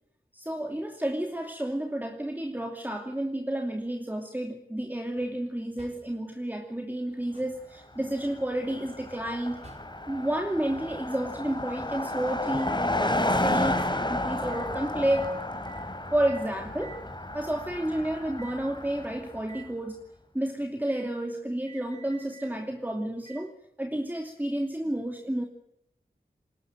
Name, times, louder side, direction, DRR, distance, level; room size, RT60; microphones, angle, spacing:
voice 1, 0.3-9.6 10.1-15.4 16.1-17.0 17.3-20.0 20.3-25.5, right 1 dB, 10° right, 4 dB, 2.7 m, -31 dB
sound 1, 5.2-5.5 5.8-6.2 7.1-7.7 9.2-10.1 12.6-12.8 13.7-13.9 14.5-14.7 15.1-15.3 15.6-15.9 16.3-16.5 16.8-17.1 17.8-17.9 18.4-18.6 19.4-19.7 20.9-21.1 21.7-22.5 23.2-23.5 24.3-24.4, right 5 dB, 45° right, 5.5 m, -50 dB
Car passing by, 8.1-8.2 8.4-19.4, left 1 dB, 30° left, 4.0 m, -32 dB
21.0 x 18.5 x 9.0 m, 0.76 s
cardioid pair, 45°, 16 cm